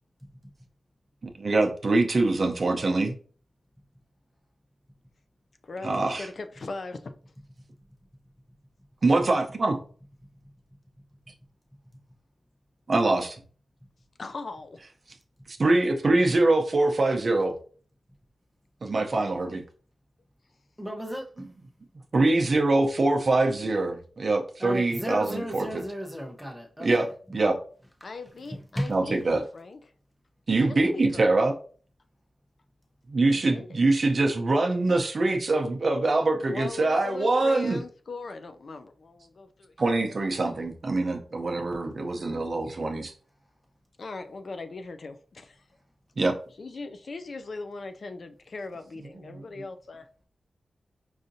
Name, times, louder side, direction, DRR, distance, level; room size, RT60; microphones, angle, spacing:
voice 1, 1.4-3.1 5.8-6.3 9.0-9.8 12.9-13.4 15.5-17.5 18.8-19.6 22.1-25.8 26.8-27.6 28.9-29.4 30.5-31.5 33.1-37.8 39.8-43.1 46.2-46.3 49.3-49.5, right 2 dB, 50° right, 0.6 m, -24 dB
voice 2, 5.6-7.2 14.2-14.8 28.0-29.8 30.6-31.5 33.3-33.8 36.4-39.8 44.0-45.6 46.6-50.2, left 3 dB, 60° left, 0.4 m, -39 dB
voice 3, 20.8-21.4 24.6-26.9 28.8-28.9, equal, ahead, 0.8 m, -33 dB
4.8 x 2.6 x 2.7 m
wide cardioid pair, 90°, 0 cm